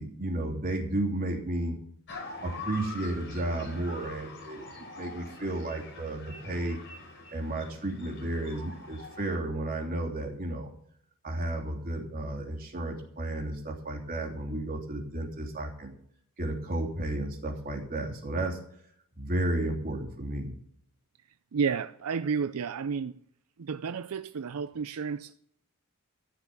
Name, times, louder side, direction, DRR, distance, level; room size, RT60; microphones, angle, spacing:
voice 1, 0.0-1.8 2.4-4.7 5.0-6.8 7.3-10.7 11.2-15.9 16.4-18.6 19.2-20.5, right 1 dB, 40° right, 3.2 m, -33 dB
sound 1, 2.1-9.4, left 3 dB, 55° left, 4.4 m, -44 dB
voice 2, 21.5-23.1 23.6-25.3, right 6 dB, 75° right, 0.5 m, -31 dB
14.5 x 5.9 x 9.8 m
head